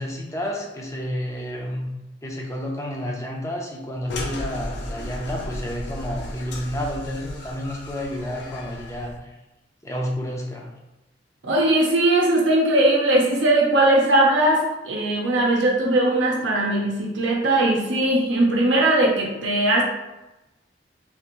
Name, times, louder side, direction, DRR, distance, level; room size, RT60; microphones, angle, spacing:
voice 1, 0.0-1.9 2.2-9.3 9.8-10.7, equal, 15° left, -1 dB, 0.6 m, -30 dB
sound 1, 4.1-9.2, left 1 dB, 65° left, 0.6 m, -34 dB
voice 2, 11.4-19.8, right 1 dB, 75° right, -3 dB, 0.6 m, -19 dB
3.4 x 2.5 x 3.0 m, 1.0 s
head